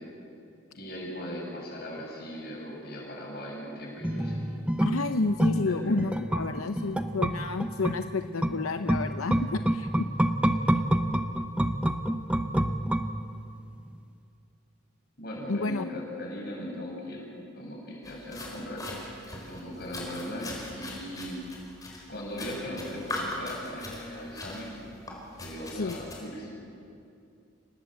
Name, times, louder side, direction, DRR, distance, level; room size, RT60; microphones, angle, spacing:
voice 1, 0.7-4.6 5.6-6.0 15.2-17.3 17.5-21.4 22.1-24.7 25.4-26.5, left 1 dB, 45° left, -2 dB, 7.5 m, -38 dB
sound 1, 4.0-13.6 13.9-14.0, right 1 dB, 5° right, 0.7 m, -28 dB
voice 2, 4.8-10.1 15.5-15.8 25.7-26.0, left 3 dB, 85° left, 8 dB, 0.7 m, -30 dB
sound 2, 18.0-26.2, left 1 dB, 15° left, 4.5 m, -41 dB
27.5 x 19.5 x 7.8 m, 2.5 s
head